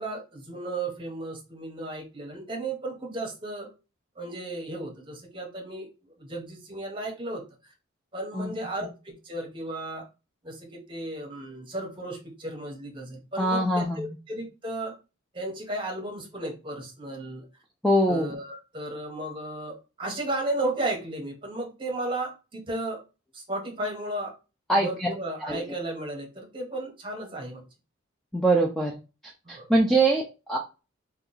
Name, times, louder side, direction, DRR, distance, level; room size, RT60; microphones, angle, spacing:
voice 1, 0.0-3.7 4.2-7.4 8.1-10.0 10.4-14.9 15.3-17.5 18.1-23.0 23.3-24.3 24.8-27.6 29.4-29.7, right 2 dB, 25° right, 1 dB, 0.9 m, -34 dB
voice 2, 13.4-14.1 17.8-18.3 24.7-25.1 25.4-25.6 28.3-29.0 29.5-30.6, right 1 dB, ahead, -1 dB, 0.3 m, -23 dB
2.9 x 2.2 x 3.8 m, 0.30 s
head